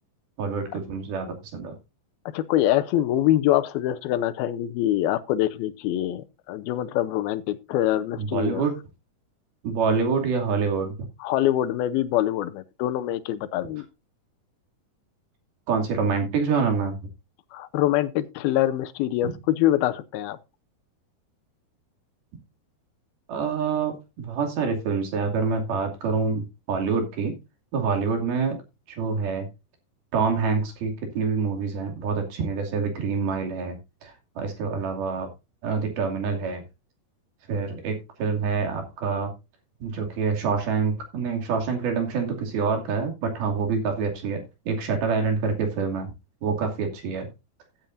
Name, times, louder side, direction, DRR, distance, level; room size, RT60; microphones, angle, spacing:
voice 1, 0.4-1.8 8.2-8.8 9.6-11.0 15.7-17.0 19.2-19.3 23.3-27.4 27.7-28.6 29.0-29.5 30.1-33.8 34.0-35.3 35.6-36.6 37.5-39.3 39.8-46.1 46.4-47.3, right 5 dB, 70° right, 4.5 m, -26 dB
voice 2, 2.3-8.6 11.2-13.9 17.5-20.4, left 13 dB, 80° left, 2.5 m, -24 dB
15.0 x 8.7 x 2.6 m
omnidirectional pair, 4.5 m